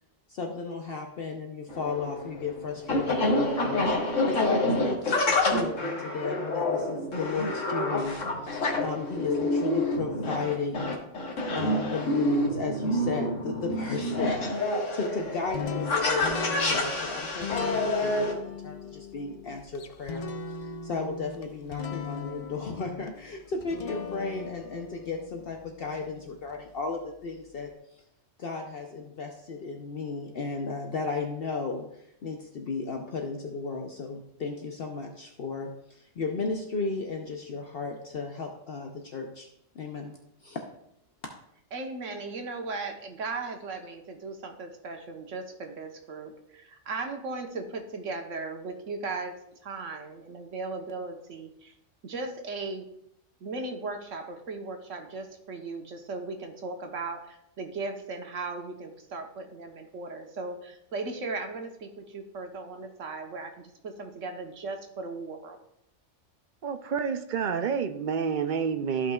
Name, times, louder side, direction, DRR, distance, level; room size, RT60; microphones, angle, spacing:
voice 1, 0.3-11.0 11.5-20.3 20.6-27.7 28.4-31.9 32.2-39.5 39.7-40.2 40.4-40.6, left 4 dB, 55° left, 3 dB, 0.9 m, -35 dB
sound 1, 1.7-18.3, left 2 dB, 90° left, 2.0 m, -28 dB
sound 2, 15.5-26.6, left 5 dB, 70° left, 0.3 m, -38 dB
voice 2, 41.7-49.3 49.6-51.7 52.0-52.9 53.4-65.6, right 3 dB, 90° right, 4 dB, 1.4 m, -37 dB
voice 3, 66.6-69.1, right 6 dB, 55° right, 8 dB, 0.5 m, -29 dB
14.5 x 5.4 x 2.3 m, 0.77 s
omnidirectional pair, 1.3 m